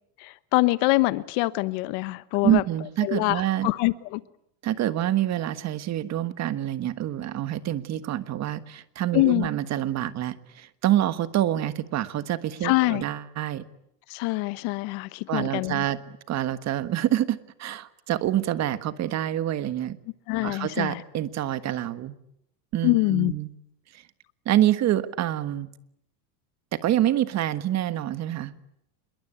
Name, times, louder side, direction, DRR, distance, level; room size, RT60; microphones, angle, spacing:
voice 1, 0.2-2.6 3.0-4.2 9.1-9.5 12.6-13.0 14.1-15.8 20.3-21.0 22.8-23.3, left 22 dB, 55° left, 16 dB, 1.1 m, -24 dB
voice 2, 2.4-3.7 4.6-13.6 15.3-16.0 16.3-20.0 20.4-22.1 22.7-23.5 24.4-25.7 26.7-28.5, right 12 dB, 30° right, 13 dB, 1.5 m, -26 dB
27.5 x 22.5 x 8.9 m, 0.76 s
supercardioid pair, 155°, 50 cm